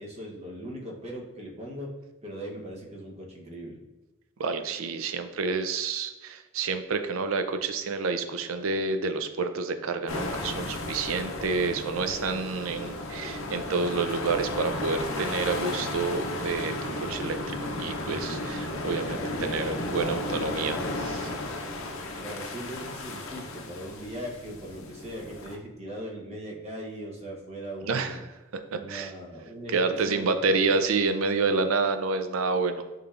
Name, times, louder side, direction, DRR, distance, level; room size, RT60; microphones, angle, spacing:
voice 1, 0.0-1.9 2.2-3.8 18.9-19.7 22.2-28.2 28.7-30.4 30.7-30.8, equal, 30° right, -1 dB, 0.8 m, -39 dB
voice 2, 4.4-21.3 27.9-28.2 28.5-29.1 29.7-32.8, right 4 dB, 80° right, 8 dB, 0.4 m, -29 dB
sound 1, 10.1-25.6, left 2 dB, 75° left, 0.6 m, -34 dB
6.9 x 3.2 x 2.4 m, 1.1 s
head